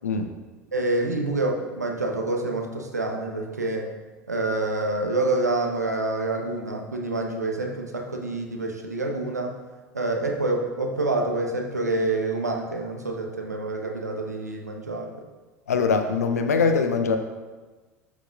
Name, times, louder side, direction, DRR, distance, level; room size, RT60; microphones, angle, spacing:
voice 1, 0.7-3.9 4.3-9.5 9.9-15.1, right 2 dB, 85° right, 2 dB, 1.1 m, -27 dB
voice 2, 15.7-17.2, left 5 dB, 75° left, 7 dB, 0.7 m, -22 dB
12.5 x 7.3 x 2.5 m, 1.3 s
figure-of-eight pair, 75°, 9 cm